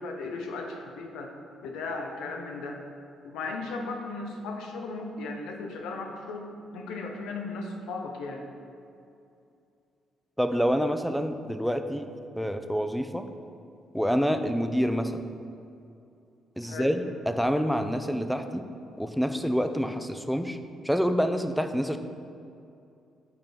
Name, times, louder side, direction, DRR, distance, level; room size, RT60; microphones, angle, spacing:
voice 1, 0.0-1.3 1.6-2.8 3.2-6.5 6.7-8.5 16.6-16.9, left 3 dB, 90° left, 2 dB, 1.0 m, -36 dB
voice 2, 10.4-12.1 12.4-13.3 13.9-15.3 16.6-18.6 19.0-20.6 20.8-22.0, equal, ahead, 8 dB, 0.6 m, -27 dB
8.8 x 4.5 x 7.0 m, 2.6 s
cardioid pair, 90°, 0 cm